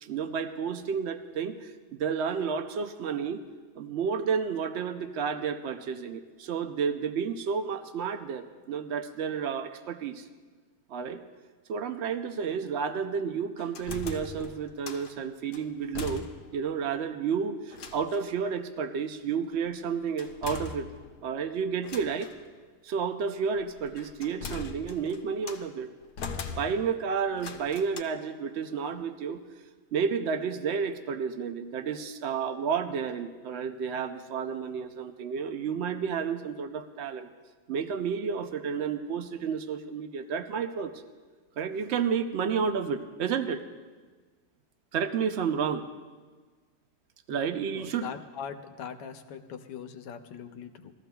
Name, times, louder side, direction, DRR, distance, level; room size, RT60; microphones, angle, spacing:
voice 1, 0.0-3.4 3.8-10.3 10.9-11.2 11.7-20.9 21.2-22.3 22.8-25.9 26.6-29.4 29.9-37.3 37.7-40.9 41.6-43.6 44.9-45.8 47.3-48.1, right 6 dB, 80° right, 8 dB, 0.6 m, -31 dB
sound 1, 13.6-15.2 15.5-16.7 16.9-17.0 17.7-18.3 20.2-21.3 21.8-22.4 23.5-25.7 26.2-27.0 27.4-28.0, left 5 dB, 70° left, 1.3 m, -41 dB
voice 2, 47.3-50.9, left 7 dB, 90° left, 7 dB, 1.4 m, -41 dB
20.0 x 14.0 x 2.3 m, 1.5 s
omnidirectional pair, 1.8 m